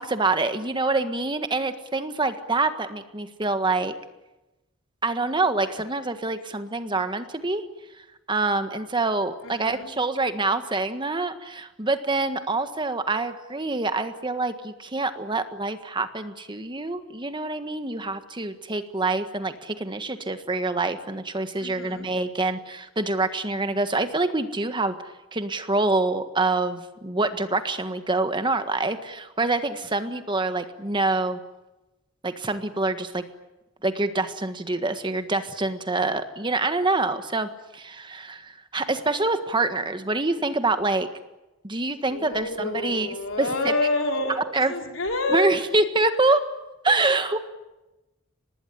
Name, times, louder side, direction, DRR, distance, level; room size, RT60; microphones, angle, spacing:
voice 1, 0.0-3.9 5.0-7.6 8.3-24.9 25.3-31.4 32.2-33.2 33.8-41.1 41.6-43.7 44.4-44.7 45.3-46.4 46.8-47.4, right 3 dB, 25° right, 9 dB, 1.5 m, -26 dB
voice 2, 9.4-9.9 21.6-22.1 42.1-45.5, left 2 dB, 85° left, 3 dB, 4.3 m, -28 dB
25.0 x 20.0 x 9.8 m, 1.0 s
head